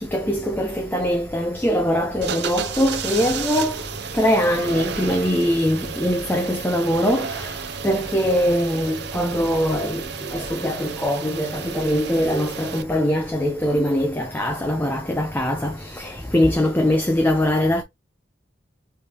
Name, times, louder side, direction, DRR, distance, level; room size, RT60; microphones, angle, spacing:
voice 1, 0.1-3.7 4.1-7.3 7.8-10.0 10.3-17.8, equal, 10° left, 0.6 m, -22 dB
sound 1, 2.2-12.8, right 6 dB, 65° right, 0.6 m, -32 dB
4.6 x 3.4 x 2.9 m
head